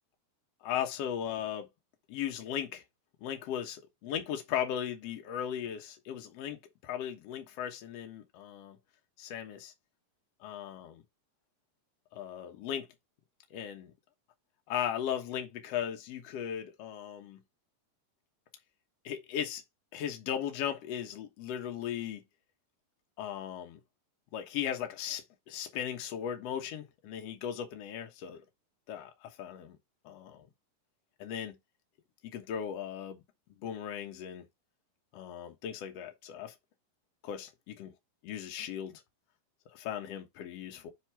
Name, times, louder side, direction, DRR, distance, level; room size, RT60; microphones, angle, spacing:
voice 1, 0.6-1.7 2.1-2.8 3.2-8.8 9.2-9.7 10.4-11.0 12.1-12.9 13.5-13.9 14.7-17.4 19.0-19.6 19.9-22.2 23.2-23.8 24.3-28.4 28.9-29.8 30.0-30.5 31.2-31.6 32.2-33.2 33.6-34.5 35.1-36.5 37.2-37.9 38.2-39.0 39.7-40.9, left 9 dB, 60° left, 1.8 m, -37 dB
7.5 x 2.9 x 4.6 m
omnidirectional pair, 4.1 m